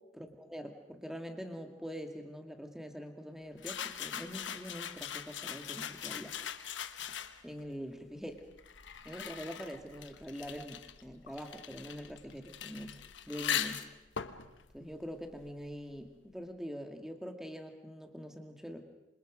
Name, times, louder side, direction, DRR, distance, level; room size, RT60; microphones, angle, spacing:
voice 1, 0.1-6.4 7.4-8.4 9.0-12.9 13.3-13.9 14.7-18.8, equal, ahead, 5 dB, 2.1 m, -44 dB
sound 1, 3.6-7.6 8.4-15.8, left 9 dB, 80° left, 1.2 m, -41 dB
28.0 x 26.0 x 5.2 m, 1.0 s
head